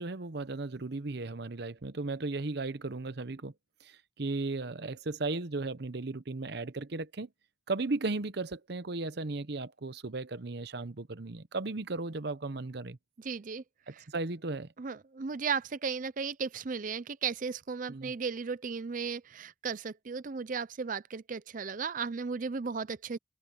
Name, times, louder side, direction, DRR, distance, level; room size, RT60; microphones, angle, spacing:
voice 1, 0.0-3.5 3.8-7.3 7.7-13.0 13.9-14.7 17.9-18.1, right 3 dB, 60° right, 0.9 m, -36 dB
voice 2, 13.2-13.6 13.9-14.0 14.8-23.2, right 5 dB, 45° right, 0.5 m, -35 dB
head